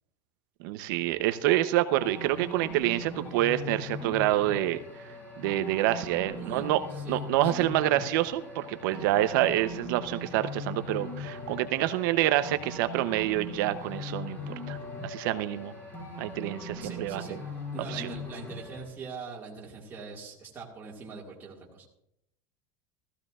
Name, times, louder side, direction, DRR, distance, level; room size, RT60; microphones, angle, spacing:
voice 1, 0.6-4.8 5.4-6.8 7.1-14.8 15.0-15.7 16.2-17.4 17.9-18.1, right 14 dB, 65° right, 11 dB, 0.8 m, -27 dB
sound 1, 2.0-18.8, left 2 dB, 15° left, 4.3 m, -40 dB
voice 2, 6.3-7.7 16.8-17.4 17.7-21.9, right 4 dB, 15° right, -3 dB, 2.0 m, -43 dB
sound 2, 8.9-10.0 10.3-18.2, left 4 dB, 60° left, 1.4 m, -50 dB
17.0 x 14.5 x 2.5 m, 0.81 s
supercardioid pair, 165°, 12 cm